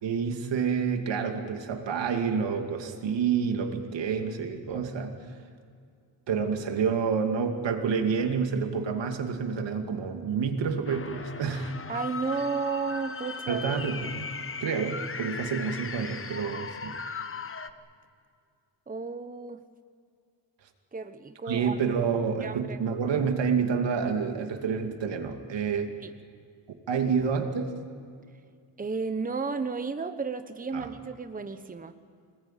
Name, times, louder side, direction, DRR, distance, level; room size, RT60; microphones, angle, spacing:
voice 1, 0.0-5.1 6.3-11.7 13.5-14.3 14.6-17.0 21.5-25.9 26.9-27.7 30.7-30.9, right 6 dB, 80° right, 5 dB, 2.5 m, -28 dB
sound 1, 10.8-17.7, left 4 dB, 30° left, 1.2 m, -38 dB
voice 2, 11.9-13.7 18.9-19.6 20.9-21.7 22.4-22.8 26.0-26.1 28.8-31.9, right 4 dB, 20° right, 9 dB, 1.1 m, -33 dB
25.5 x 20.0 x 9.1 m, 2.2 s
cardioid pair, 110°, 43 cm